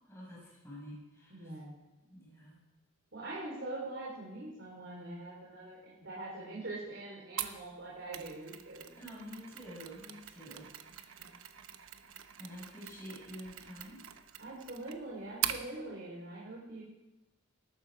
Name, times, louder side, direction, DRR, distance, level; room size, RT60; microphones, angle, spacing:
voice 1, 0.0-1.6 2.1-2.6 9.0-11.3 12.4-14.0, equal, 15° left, -5 dB, 5.9 m, -49 dB
voice 2, 1.3-1.7 3.1-8.9 14.4-16.8, right 2 dB, 55° right, -5 dB, 4.0 m, -43 dB
Mechanisms, 7.4-15.7, right 10 dB, 75° right, 1.0 m, -43 dB
18.5 x 12.0 x 4.9 m, 1.0 s
head